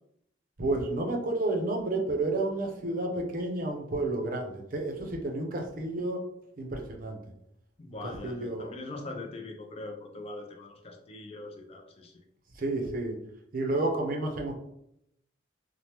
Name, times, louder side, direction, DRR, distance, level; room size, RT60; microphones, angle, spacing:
voice 1, 0.6-6.2 6.6-7.2 8.2-8.7 12.6-13.2 13.5-14.5, right 2 dB, 50° right, 2 dB, 0.5 m, -30 dB
voice 2, 7.8-12.2, left 2 dB, 30° left, 3 dB, 0.4 m, -42 dB
3.2 x 2.0 x 2.9 m, 0.75 s
head